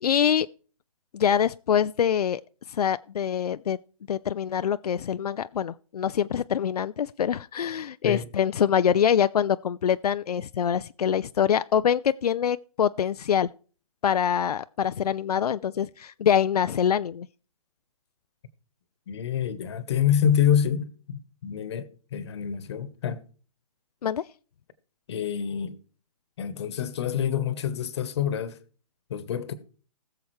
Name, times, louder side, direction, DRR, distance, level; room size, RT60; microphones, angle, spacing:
voice 1, 0.0-0.5 1.1-2.4 2.7-3.8 4.1-13.5 14.0-17.3 24.0-24.2, left 8 dB, 85° left, 0.4 m, -24 dB
voice 2, 19.1-23.2 25.1-25.7 26.4-28.6 29.1-29.5, left 9 dB, 45° left, 1.1 m, -27 dB
20.0 x 7.0 x 3.2 m
hypercardioid pair, 155°, 19 cm